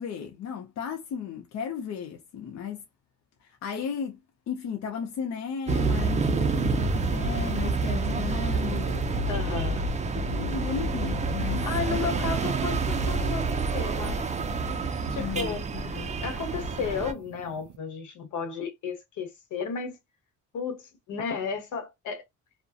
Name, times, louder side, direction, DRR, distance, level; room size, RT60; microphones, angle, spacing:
voice 1, 0.0-2.8 3.4-4.2 4.5-9.1 10.3-12.0 15.2-16.1, left 7 dB, 60° left, 0.6 m, -35 dB
sound 1, 5.7-17.1, right 3 dB, 25° right, 0.4 m, -28 dB
sound 2, 6.1-17.8, right 11 dB, 80° right, 0.4 m, -42 dB
voice 2, 9.3-9.9 11.6-14.2 15.1-15.6 16.1-20.0 20.5-22.2, left 5 dB, 80° left, 1.0 m, -33 dB
2.4 x 2.1 x 2.6 m
cardioid pair, 90°, 30 cm